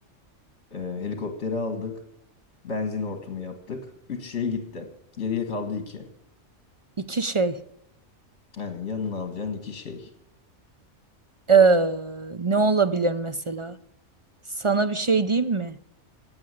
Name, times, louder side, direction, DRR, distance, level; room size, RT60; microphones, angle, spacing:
voice 1, 0.7-2.0 2.6-4.9 5.2-6.1 8.5-10.1, left 5 dB, 55° left, 7 dB, 2.2 m, -31 dB
voice 2, 7.0-7.6 11.5-13.8 14.6-15.8, right 4 dB, 45° right, 12 dB, 0.4 m, -22 dB
16.0 x 8.9 x 9.9 m, 0.81 s
omnidirectional pair, 1.4 m